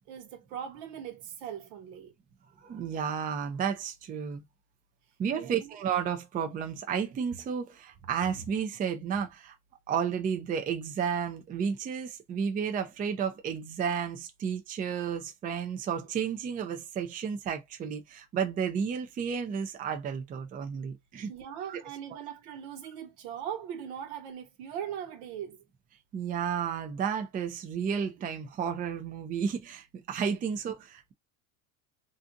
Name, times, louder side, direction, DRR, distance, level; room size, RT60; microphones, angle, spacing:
voice 1, 0.1-2.1 5.4-5.7 21.3-25.6, right 9 dB, 75° right, 1.2 m, -40 dB
voice 2, 2.6-4.4 5.2-9.5 9.9-21.3 21.7-21.8 26.1-31.1, right 7 dB, 25° right, 0.4 m, -32 dB
2.5 x 2.4 x 2.6 m
supercardioid pair, 115°, 37 cm